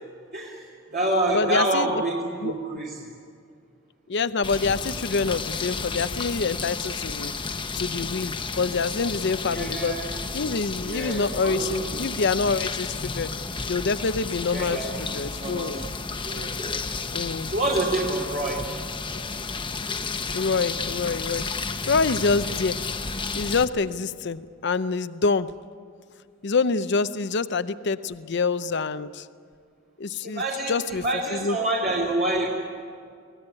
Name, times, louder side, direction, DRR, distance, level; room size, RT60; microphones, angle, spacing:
voice 1, 0.3-3.0 9.5-10.0 10.8-12.0 14.5-14.9 15.4-15.7 16.2-16.8 17.5-18.7 30.2-32.5, right 1 dB, 50° right, -3 dB, 3.0 m, -27 dB
voice 2, 1.3-2.0 2.4-2.5 4.1-7.3 7.7-9.9 10.3-13.3 13.7-15.8 17.1-17.5 20.3-21.5 21.9-22.8 23.3-25.5 26.4-29.3 30.0-31.0 31.3-31.6, left 4 dB, 60° left, 13 dB, 0.6 m, -26 dB
sound 1, 4.4-23.6, left 4 dB, 25° left, 1.0 m, -32 dB
24.0 x 18.0 x 9.9 m, 2.2 s
head